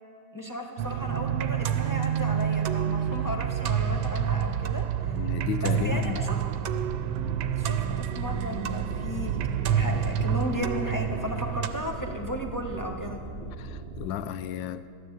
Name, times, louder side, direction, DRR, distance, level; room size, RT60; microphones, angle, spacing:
voice 1, 0.3-5.1 5.6-6.4 7.6-9.4 9.7-13.2, equal, 15° left, 0 dB, 0.7 m, -35 dB
sound 1, 0.8-11.7, right 9 dB, 75° right, 1.5 m, -28 dB
voice 2, 5.1-6.3 13.6-14.9, left 9 dB, 75° left, 13 dB, 1.3 m, -33 dB
sound 2, 5.4-14.1, right 3 dB, 40° right, 0.7 m, -39 dB
13.0 x 10.0 x 8.9 m, 2.3 s
omnidirectional pair, 2.2 m